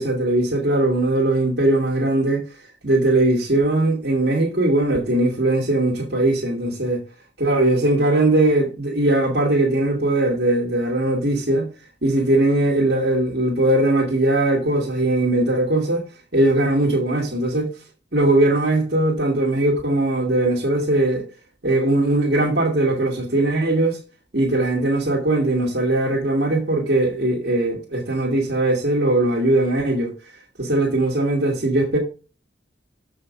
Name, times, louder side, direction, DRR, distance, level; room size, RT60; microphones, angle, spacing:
voice 1, 0.0-7.0 7.4-11.7 12.0-16.1 16.3-17.7 18.1-21.2 21.6-24.0 24.3-30.1 30.6-32.0, right 2 dB, 55° right, 2.0 m, -20 dB
7.1 x 5.6 x 5.2 m
head